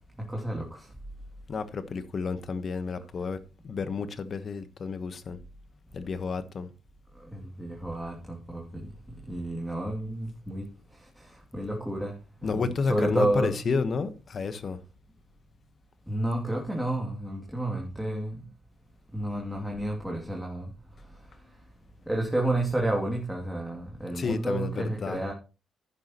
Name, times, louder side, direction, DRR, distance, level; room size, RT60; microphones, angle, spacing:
voice 1, 0.3-0.9 7.3-8.9 9.3-10.7 11.2-12.2 12.5-13.6 16.1-18.4 19.1-20.7 22.1-25.3, right 1 dB, 5° right, 2.6 m, -30 dB
voice 2, 1.5-3.4 3.6-5.4 5.9-6.7 12.4-14.8 24.1-25.2, left 4 dB, 45° left, 1.2 m, -31 dB
10.5 x 10.0 x 3.0 m
cardioid pair, 90°, 0 cm